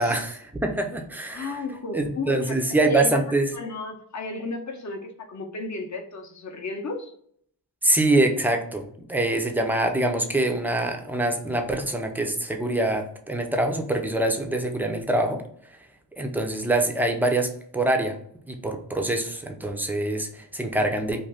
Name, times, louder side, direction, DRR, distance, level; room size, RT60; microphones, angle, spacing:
voice 1, 0.0-1.5 1.9-3.5 7.8-15.4 16.2-18.2 18.5-21.2, right 2 dB, 5° right, 4 dB, 0.4 m, -24 dB
voice 2, 1.3-3.2 3.5-7.1, left 3 dB, 40° left, 4 dB, 0.7 m, -34 dB
2.5 x 2.2 x 3.4 m, 0.65 s
cardioid pair, 55°, 43 cm